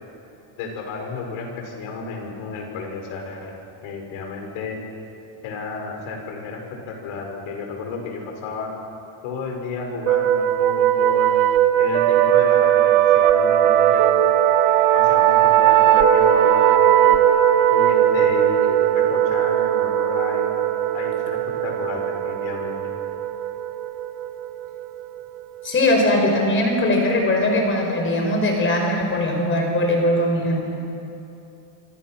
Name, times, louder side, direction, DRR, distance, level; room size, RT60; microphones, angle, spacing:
voice 1, 0.6-4.8 5.4-8.7 9.2-11.4 11.8-14.1 14.9-17.2 17.7-20.5 20.9-22.8, left 4 dB, 80° left, 2 dB, 5.6 m, -32 dB
sound 1, 10.1-25.4, right 11 dB, 65° right, 1.3 m, -18 dB
voice 2, 25.6-30.6, left 1 dB, 25° left, 1 dB, 4.6 m, -20 dB
26.5 x 25.5 x 6.1 m, 2.7 s
cardioid pair, 175°, 50 cm